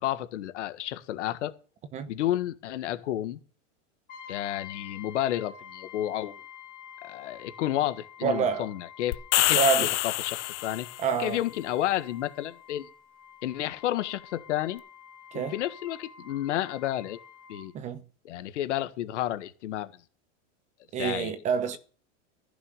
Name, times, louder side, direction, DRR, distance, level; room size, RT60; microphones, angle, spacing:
voice 1, 0.0-1.5 2.1-3.4 4.3-6.4 7.0-9.6 10.0-10.9 11.2-12.9 13.4-14.8 15.3-17.2 17.5-17.7 18.2-19.9 21.0-21.3, left 13 dB, 75° left, 1.6 m, -31 dB
Brass instrument, 4.1-17.7, left 8 dB, 25° left, 5.6 m, -48 dB
voice 2, 8.2-8.7 9.5-9.9 11.0-11.4 15.3-15.5 17.7-18.0 20.9-21.8, right 6 dB, 20° right, 0.9 m, -27 dB
sound 1, 9.1-11.1, left 19 dB, 45° left, 0.7 m, -26 dB
15.0 x 6.1 x 6.5 m
supercardioid pair, 165°, 36 cm